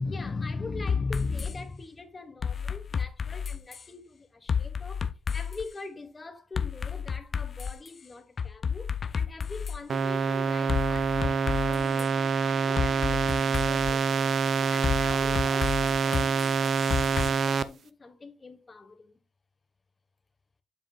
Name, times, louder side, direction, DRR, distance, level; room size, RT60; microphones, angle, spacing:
voice 1, 0.0-5.0 5.3-14.3 14.6-19.2, left 3 dB, 25° left, 1.4 m, -40 dB
sound 1, 0.9-1.5 2.4-3.9 4.5-5.7 6.5-7.9 8.4-9.8 10.7-12.1 12.8-13.9 14.8-17.3, left 6 dB, 45° left, 0.6 m, -31 dB
sound 2, 9.9-17.6, right 6 dB, 50° right, 0.6 m, -26 dB
8.1 x 7.3 x 2.4 m
cardioid pair, 90°, 0 cm